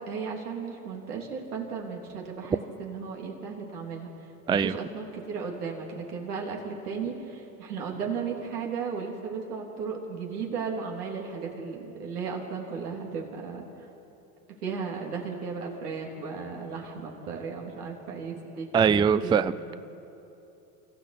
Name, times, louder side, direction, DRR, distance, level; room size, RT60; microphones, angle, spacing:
voice 1, 0.0-4.1 4.5-13.7 14.6-19.8, right 5 dB, 90° right, 0 dB, 3.5 m, -35 dB
voice 2, 18.7-19.5, right 6 dB, 10° right, 15 dB, 0.4 m, -22 dB
26.5 x 14.0 x 8.4 m, 2.9 s
hypercardioid pair, 85°, 45 cm